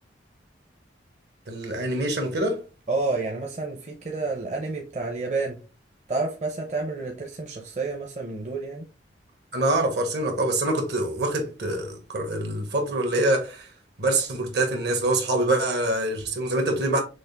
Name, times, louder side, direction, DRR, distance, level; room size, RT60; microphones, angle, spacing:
voice 1, 1.5-2.6 9.5-13.7 14.0-17.0, right 2 dB, 65° right, 1.4 m, -25 dB
voice 2, 2.9-5.6 6.1-8.9, right 3 dB, 40° right, 0.8 m, -29 dB
6.2 x 2.5 x 3.4 m
head